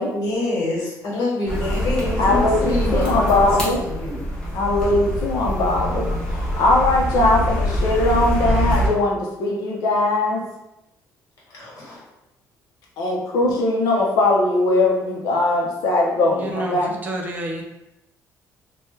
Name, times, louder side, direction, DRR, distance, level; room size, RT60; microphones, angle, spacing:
voice 1, 0.1-3.2 3.6-4.2 11.5-12.0, left 2 dB, 60° left, -5 dB, 1.3 m, -26 dB
sound 1, 1.5-8.9, equal, 10° left, 0.8 m, -24 dB
voice 2, 2.2-3.8 4.5-10.4 13.0-16.9, left 2 dB, 90° left, -1 dB, 0.6 m, -20 dB
voice 3, 16.3-17.6, right 1 dB, 30° right, 1 dB, 0.4 m, -29 dB
3.2 x 2.2 x 3.2 m, 0.90 s
cardioid pair, 170°, 6 cm